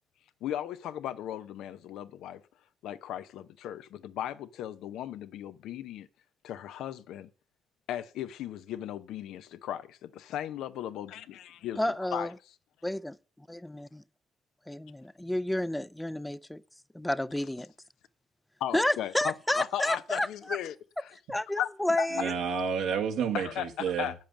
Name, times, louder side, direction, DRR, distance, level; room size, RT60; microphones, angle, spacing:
voice 1, 0.4-2.4 2.8-6.1 6.4-7.3 7.9-11.8 12.1-12.3 18.6-20.8 21.0-21.2 21.6-21.7 22.0-22.1 23.3-24.1, left 11 dB, 85° left, 0.7 m, -36 dB
voice 2, 11.8-12.3 12.8-13.2 13.5-14.0 14.7-16.6 16.9-17.7 18.7-20.3 21.3-22.3, left 1 dB, 5° left, 0.5 m, -30 dB
voice 3, 22.1-24.1, right 6 dB, 85° right, 1.9 m, -30 dB
8.9 x 7.6 x 7.0 m
cardioid pair, 90°, 0 cm